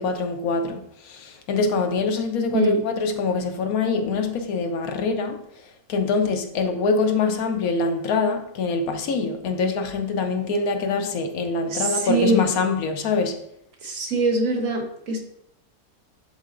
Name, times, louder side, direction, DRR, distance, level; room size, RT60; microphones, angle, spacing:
voice 1, 0.0-5.4 5.9-13.4, left 4 dB, 75° left, 1.2 m, -24 dB
voice 2, 11.7-12.4 13.8-15.2, right 2 dB, 65° right, 1.4 m, -22 dB
11.5 x 4.1 x 2.5 m
omnidirectional pair, 1.6 m